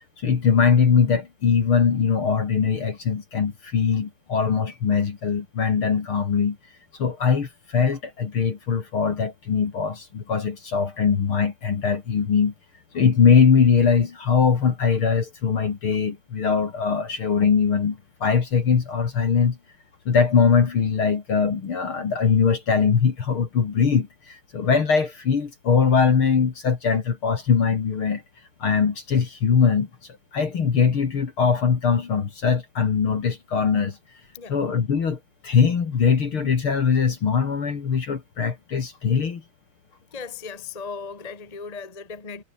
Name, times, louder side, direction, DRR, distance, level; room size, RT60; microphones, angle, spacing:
voice 1, 0.2-6.6 7.0-12.5 12.9-19.6 20.1-28.2 28.6-29.9 30.3-34.0 34.5-39.4, left 6 dB, 45° left, 2.6 m, -21 dB
voice 2, 40.1-42.4, left 5 dB, 15° left, 1.8 m, -37 dB
omnidirectional pair, 4.0 m